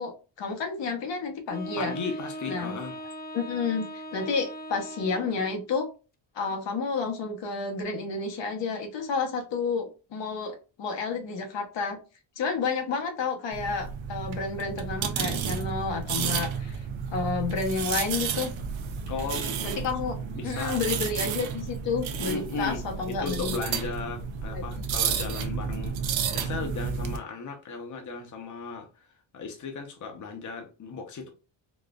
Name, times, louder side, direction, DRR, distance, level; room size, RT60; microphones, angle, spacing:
voice 1, 0.0-1.9 2.5-2.8 3.3-5.9 6.3-12.0 12.4-16.8 17.1-18.5 19.6-20.1 20.4-23.5 24.5-24.6, left 4 dB, 70° left, 1.0 m, -30 dB
Wind instrument woodwind instrument, 1.5-5.6, right 1 dB, 20° left, 0.5 m, -39 dB
voice 2, 1.7-3.0 19.1-19.6 20.4-20.8 22.3-29.1 29.3-31.3, left 4 dB, 40° left, 0.9 m, -36 dB
sound 1, 13.5-27.2, right 7 dB, 85° right, 0.7 m, -31 dB
4.0 x 2.4 x 2.3 m
cardioid pair, 110°, 46 cm